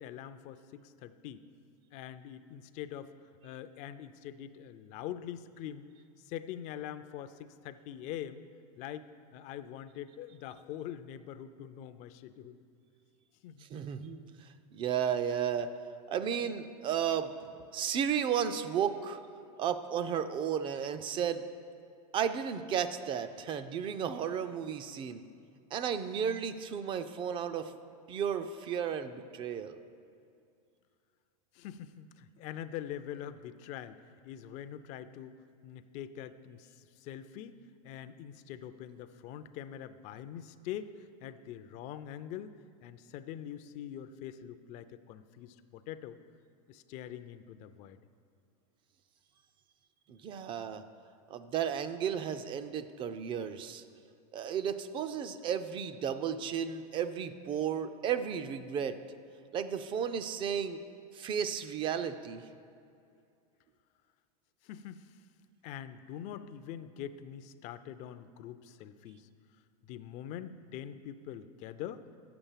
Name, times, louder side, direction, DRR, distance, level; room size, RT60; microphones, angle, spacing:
voice 1, 0.0-1.4 1.9-3.1 3.4-5.9 6.2-8.4 8.8-9.1 9.3-12.6 13.4-13.7 31.5-34.0 34.2-35.4 35.6-37.6 37.8-42.6 42.8-46.2 46.7-48.0 64.6-65.2 65.6-69.3 69.8-72.1, left 10 dB, 40° left, 11 dB, 0.4 m, -44 dB
voice 2, 13.6-15.7 16.1-19.2 19.6-21.5 22.1-25.2 25.7-27.8 28.1-29.8 50.1-50.8 51.3-53.8 54.3-59.0 59.5-60.8 61.1-62.5, right 8 dB, 25° right, 11 dB, 0.4 m, -33 dB
8.4 x 6.9 x 7.3 m, 2.4 s
supercardioid pair, 140°, 19 cm